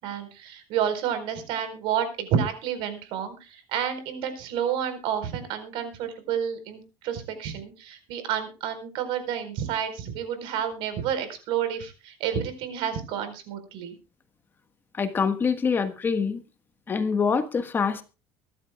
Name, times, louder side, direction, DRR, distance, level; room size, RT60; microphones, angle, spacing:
voice 1, 0.0-14.0, right 8 dB, 70° right, 10 dB, 4.3 m, -30 dB
voice 2, 15.0-16.4 16.9-18.0, left 5 dB, 25° left, 10 dB, 1.4 m, -25 dB
24.0 x 12.0 x 2.3 m, 0.31 s
cardioid pair, 145°, 9 cm